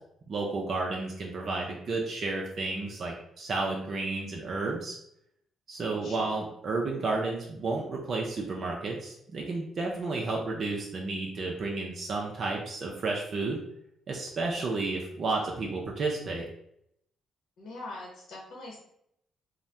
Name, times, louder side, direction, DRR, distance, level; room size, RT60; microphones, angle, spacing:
voice 1, 0.3-5.0 5.7-13.6 14.1-16.5, right 3 dB, 50° right, -1 dB, 0.5 m, -32 dB
voice 2, 6.0-6.4 17.6-18.8, left 2 dB, 70° left, -2 dB, 0.8 m, -42 dB
2.6 x 2.1 x 3.2 m, 0.74 s
cardioid pair, 90°, 0 cm